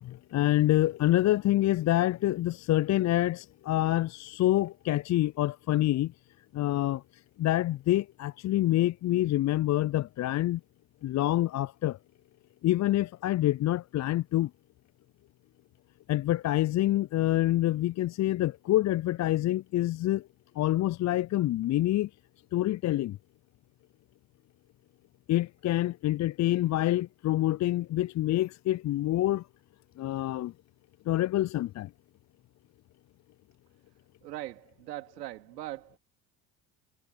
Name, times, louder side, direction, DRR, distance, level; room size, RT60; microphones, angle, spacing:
voice 1, 0.0-6.1 6.5-7.0 7.4-10.6 11.0-12.0 12.6-14.5 16.1-20.3 20.6-22.1 22.5-23.2 25.3-29.5 30.0-30.5 31.1-31.9, left 15 dB, 35° left, 0.6 m, -26 dB
voice 2, 34.2-36.0, right 15 dB, 80° right, 3.1 m, -40 dB
figure-of-eight pair, 55°, 48 cm